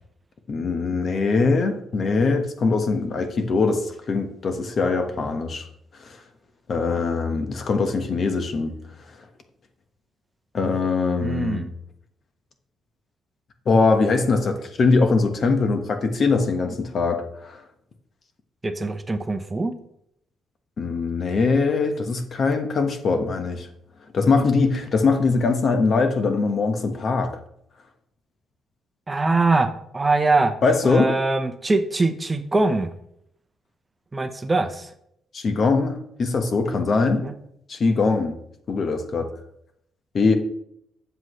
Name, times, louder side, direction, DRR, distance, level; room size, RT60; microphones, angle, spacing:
voice 1, 0.5-5.7 6.0-6.2 6.7-8.7 10.5-11.7 13.6-17.6 20.8-23.7 24.1-27.3 30.6-31.1 35.3-37.2 37.7-38.3 38.7-39.3 40.1-40.3, left 4 dB, 50° left, 6 dB, 1.2 m, -22 dB
voice 2, 11.2-11.7 18.6-19.7 29.1-30.5 30.8-32.9 34.1-34.9 37.2-37.3, right 3 dB, 20° right, 9 dB, 0.8 m, -22 dB
8.0 x 7.4 x 3.2 m, 0.72 s
cardioid pair, 90°, 0 cm